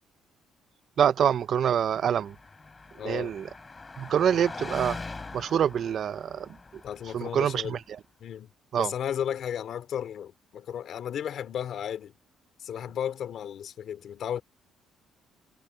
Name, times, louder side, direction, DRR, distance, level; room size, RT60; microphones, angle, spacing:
voice 1, 1.0-2.3 3.0-3.5 4.0-5.0 5.3-6.5 7.1-7.8 8.7-8.9, right 8 dB, 45° right, 0.4 m, -25 dB
Car passing by, 1.7-7.7, left 3 dB, 15° left, 5.8 m, -42 dB
voice 2, 3.0-3.3 6.8-7.8 8.2-12.1 12.6-14.4, left 9 dB, 50° left, 2.7 m, -34 dB
cardioid pair, 165°, 0 cm